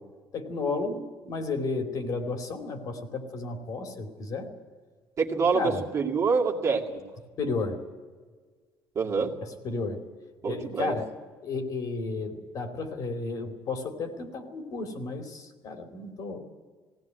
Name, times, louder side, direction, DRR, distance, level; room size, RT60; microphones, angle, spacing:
voice 1, 0.3-4.5 5.5-5.8 7.4-7.8 9.4-10.0 10.4-11.1 11.4-16.4, left 3 dB, 50° left, 6 dB, 2.8 m, -33 dB
voice 2, 5.2-7.0 9.0-9.3 10.4-10.9, right 5 dB, 35° right, 0 dB, 2.2 m, -26 dB
19.5 x 17.5 x 9.3 m, 1.5 s
cardioid pair, 150°, 8 cm